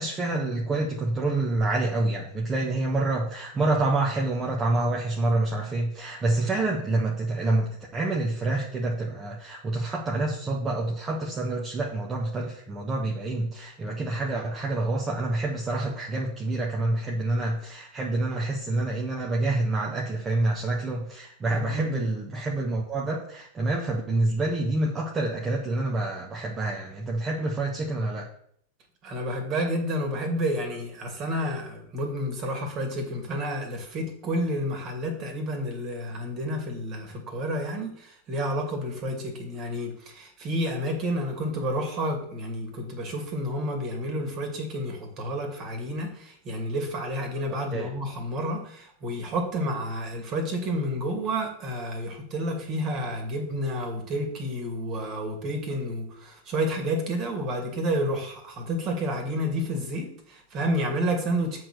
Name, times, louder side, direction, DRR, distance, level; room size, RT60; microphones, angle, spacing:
voice 1, 0.0-28.3 47.5-47.9, right 2 dB, 20° right, -2 dB, 1.3 m, -27 dB
voice 2, 21.5-22.0 29.0-61.6, equal, 35° right, 3 dB, 2.4 m, -30 dB
7.6 x 4.4 x 6.6 m, 0.65 s
figure-of-eight pair, 90°, 0 cm